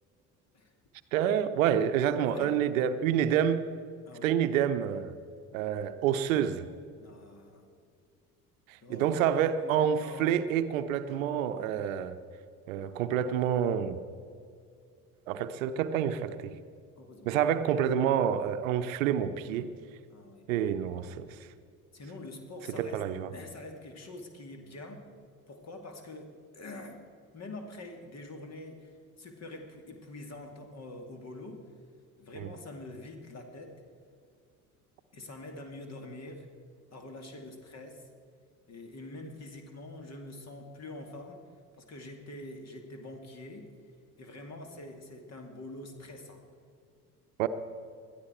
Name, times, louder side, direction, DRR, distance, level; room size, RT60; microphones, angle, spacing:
voice 1, 1.1-3.6 4.2-5.1 5.5-6.7 8.7-12.2 12.7-14.0 15.3-16.6 17.3-19.7 20.5-21.3 22.8-23.3 32.4-32.5 47.4-47.5, right 9 dB, 65° right, 11 dB, 0.8 m, -28 dB
voice 2, 2.2-2.6 4.1-4.3 7.0-7.7 8.8-10.4 17.0-17.4 20.1-20.6 21.9-23.0 23.3-25.1 25.5-27.0 27.3-28.9 29.2-31.7 32.2-33.8 35.1-36.5 36.9-38.1 38.7-41.4 41.8-43.7 44.2-46.4, left 2 dB, 35° left, 5 dB, 2.5 m, -45 dB
21.0 x 12.5 x 4.5 m, 2.3 s
figure-of-eight pair, 55°, 44 cm